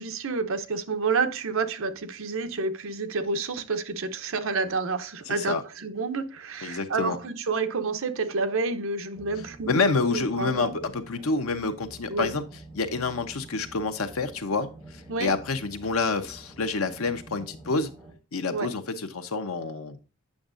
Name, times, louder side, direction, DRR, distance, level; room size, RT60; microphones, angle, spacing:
voice 1, 0.0-10.8 12.1-12.3 15.1-15.3 18.5-18.7, right 4 dB, 70° right, 0.8 m, -29 dB
voice 2, 5.3-5.6 6.6-7.2 9.7-12.4 12.7-14.7 15.2-17.9 18.3-20.0, left 4 dB, 85° left, 0.9 m, -28 dB
sound 1, 9.1-18.1, right 2 dB, 5° right, 2.2 m, -48 dB
8.5 x 6.4 x 2.5 m
head